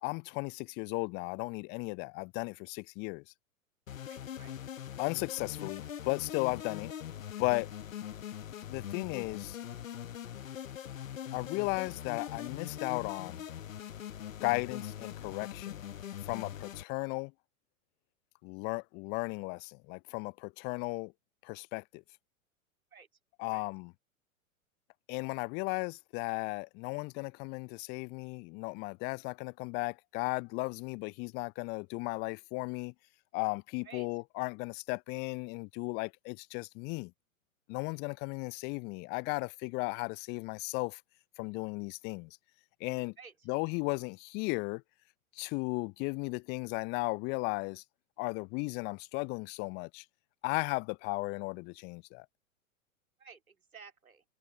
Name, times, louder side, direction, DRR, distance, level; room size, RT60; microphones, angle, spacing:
voice 1, 0.0-3.2 5.0-6.9 7.4-7.7 8.7-9.6 11.3-13.4 14.4-15.8 16.2-17.3 18.4-21.1 21.4-22.0 23.4-23.9 25.1-32.9 33.3-37.1 37.7-41.0 41.4-42.3 42.8-43.1 43.5-44.8 45.4-47.8 48.2-50.0 50.4-52.3, left 30 dB, 25° left, 0.6 m, -35 dB
sound 1, 3.9-16.8, left 10 dB, 65° left, 1.3 m, -42 dB
voice 2, 4.1-4.5 22.9-23.1 23.5-23.6 33.8-34.1 43.2-43.3 53.2-54.2, right 6 dB, 80° right, 2.6 m, -53 dB
figure-of-eight pair, 100°, 42 cm